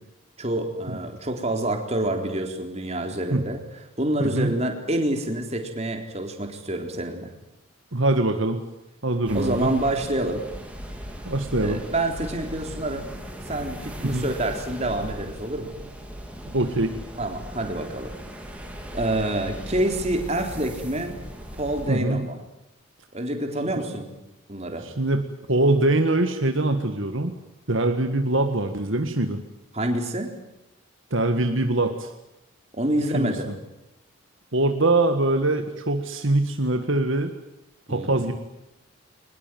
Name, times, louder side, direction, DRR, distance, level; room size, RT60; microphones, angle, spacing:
voice 1, 0.4-3.6 4.0-7.3 9.3-10.4 11.6-13.1 13.5-15.7 17.2-18.1 18.9-21.2 21.6-22.4 23.1-24.1 24.5-24.9 29.7-30.3 32.7-33.5 37.9-38.2, right 1 dB, 30° right, 4 dB, 3.9 m, -27 dB
voice 2, 4.2-4.5 7.9-8.6 9.0-9.7 11.3-11.8 14.0-14.2 16.5-16.9 21.9-22.2 23.8-23.9 24.8-25.2 25.5-27.3 27.7-29.4 31.1-32.1 33.1-33.3 34.5-37.3 37.9-38.3, right 2 dB, 60° right, 6 dB, 1.8 m, -23 dB
sound 1, 9.3-21.9, equal, 5° right, 3.9 m, -38 dB
23.5 x 21.0 x 9.4 m, 0.89 s
head